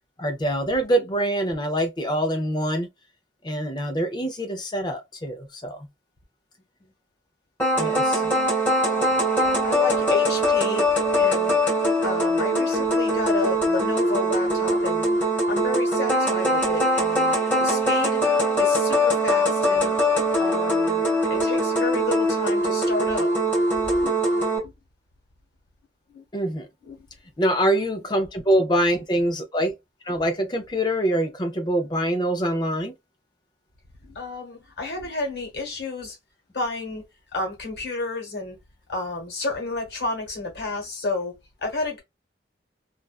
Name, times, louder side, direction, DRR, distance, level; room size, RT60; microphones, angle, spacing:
voice 1, 0.2-2.9 3.4-5.8 7.8-8.2 26.3-26.7 27.4-29.7 30.1-32.9, right 1 dB, 25° left, 0.5 m, -24 dB
sound 1, 7.6-24.6, equal, 10° left, 1.3 m, -22 dB
voice 2, 8.1-8.5 8.9-10.8 11.2-11.6 12.0-15.1 15.5-18.2 18.6-19.9 20.4-23.3 23.8-24.1 24.6-24.7 26.1-26.2 26.8-27.1 34.0-36.2 36.5-37.1 37.3-38.6 38.9-41.3 41.6-42.0, left 2 dB, 65° left, 1.2 m, -31 dB
2.4 x 2.2 x 2.3 m
head